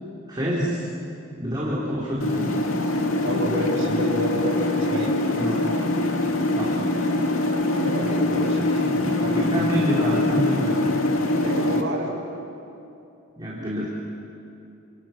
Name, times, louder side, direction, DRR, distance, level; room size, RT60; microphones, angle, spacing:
voice 1, 0.3-0.8 1.4-2.6 5.3-5.6 6.6-6.8 9.3-10.9 13.4-13.9, equal, 20° right, -7 dB, 4.3 m, -27 dB
sound 1, 2.2-11.8, left 2 dB, 90° left, 2.3 m, -23 dB
voice 2, 3.2-5.2 7.8-10.1 11.4-12.1, right 1 dB, 65° right, -2 dB, 6.9 m, -30 dB
30.0 x 27.5 x 6.1 m, 2.8 s
head